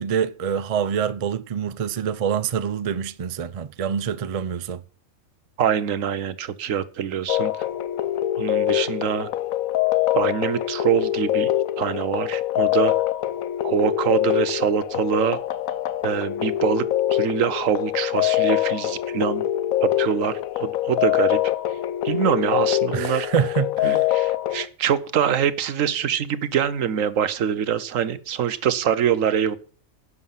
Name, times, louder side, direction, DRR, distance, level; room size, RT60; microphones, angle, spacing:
voice 1, 0.0-4.8 22.9-24.0, right 7 dB, 55° right, 0.4 m, -26 dB
voice 2, 5.6-7.6 8.4-9.3 10.1-11.5 11.8-12.9 13.6-15.4 16.0-19.4 19.8-21.4 22.0-23.3 23.8-29.6, right 8 dB, 70° right, 1.2 m, -24 dB
sound 1, 7.3-24.7, left 13 dB, 80° left, 1.1 m, -24 dB
11.0 x 6.8 x 5.6 m
omnidirectional pair, 1.4 m